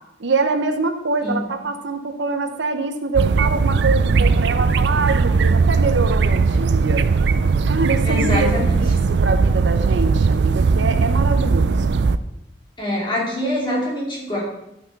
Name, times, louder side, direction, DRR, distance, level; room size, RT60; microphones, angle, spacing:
voice 1, 0.2-7.1 7.6-8.5 8.8-12.0, right 3 dB, 80° right, 7 dB, 0.9 m, -24 dB
sound 1, 3.1-12.2, right 4 dB, 65° right, 0.4 m, -18 dB
voice 2, 8.0-8.8 12.8-14.4, left 1 dB, 25° left, -5 dB, 2.7 m, -24 dB
12.0 x 5.8 x 4.2 m, 0.83 s
head